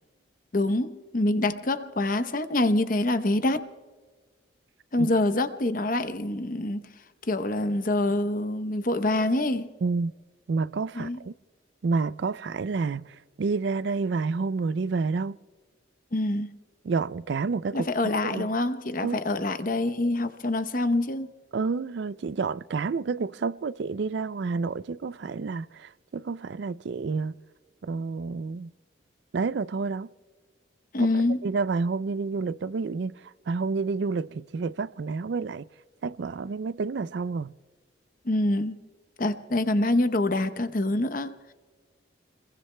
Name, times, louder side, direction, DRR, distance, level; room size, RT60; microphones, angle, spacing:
voice 1, 0.5-3.7 4.9-6.8 7.3-9.7 10.9-11.2 16.1-16.5 17.7-21.3 30.9-31.4 38.2-38.7 39.2-41.5, left 2 dB, 45° left, 0.8 m, -26 dB
voice 2, 9.8-10.1 10.5-11.3 11.8-13.1 13.4-15.4 16.8-17.9 18.2-18.5 19.0-19.2 21.5-27.3 27.8-28.7 29.3-30.1 31.4-33.2 33.5-35.6 36.0-37.5, right 4 dB, 60° right, 0.4 m, -29 dB
29.0 x 21.5 x 2.2 m
head